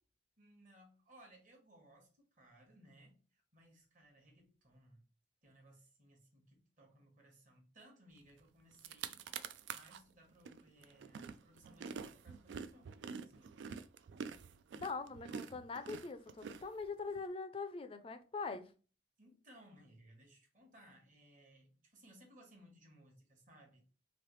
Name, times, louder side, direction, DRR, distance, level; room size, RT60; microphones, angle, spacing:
voice 1, 0.4-5.1 5.4-9.4 9.7-13.8 19.2-23.9, right 1 dB, 45° right, 1.2 m, -63 dB
sound 1, 8.4-8.5 8.7-10.0 10.5-17.2, right 6 dB, 85° right, 0.3 m, -47 dB
voice 2, 14.7-18.7, left 4 dB, 30° left, 0.4 m, -43 dB
3.2 x 2.7 x 3.1 m
head